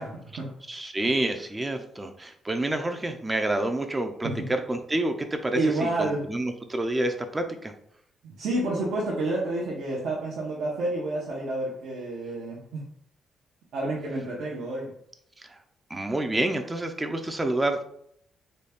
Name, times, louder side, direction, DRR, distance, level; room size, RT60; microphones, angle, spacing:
voice 1, 0.0-0.5 4.2-4.5 5.5-6.3 8.2-12.8 13.7-14.9, right 2 dB, 75° right, -5 dB, 0.8 m, -29 dB
voice 2, 0.7-7.7 15.4-15.6 15.9-17.8, right 1 dB, 20° right, 6 dB, 0.4 m, -28 dB
3.9 x 2.2 x 3.4 m, 0.70 s
cardioid pair, 90°, 0 cm